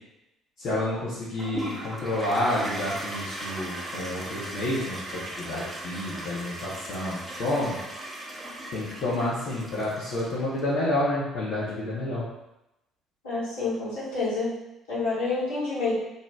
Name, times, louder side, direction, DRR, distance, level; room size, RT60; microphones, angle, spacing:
voice 1, 0.6-7.8 8.7-12.2, left 1 dB, 60° left, -10 dB, 0.7 m, -29 dB
Toilet flush, 1.4-10.6, right 1 dB, 10° right, 0.7 m, -38 dB
voice 2, 13.2-14.5 14.9-15.9, left 3 dB, 75° left, -10 dB, 1.1 m, -28 dB
2.6 x 2.0 x 3.3 m, 0.91 s
figure-of-eight pair, 50°, 0 cm